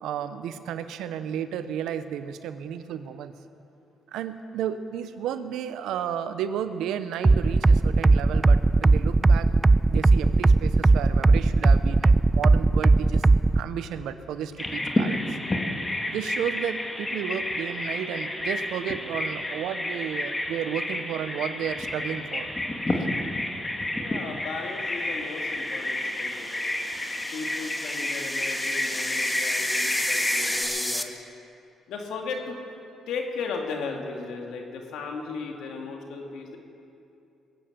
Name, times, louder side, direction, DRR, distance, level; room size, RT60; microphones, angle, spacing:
voice 1, 0.0-3.3 4.1-9.5 9.9-13.2 13.5-15.4 16.1-22.5, right 9 dB, 85° right, 11 dB, 0.8 m, -32 dB
sound 1, 7.2-13.6, right 3 dB, 25° right, 0.3 m, -18 dB
Bird vocalization bird call bird song, 14.6-30.6, left 1 dB, 20° left, 2.1 m, -30 dB
voice 2, 23.9-26.6 27.3-31.2 31.9-32.6 33.1-36.6, left 4 dB, 85° left, 2 dB, 2.3 m, -36 dB
sound 2, 25.9-31.0, left 1 dB, 5° left, 1.1 m, -33 dB
21.0 x 9.0 x 7.5 m, 2.6 s
cardioid pair, 75°, 0 cm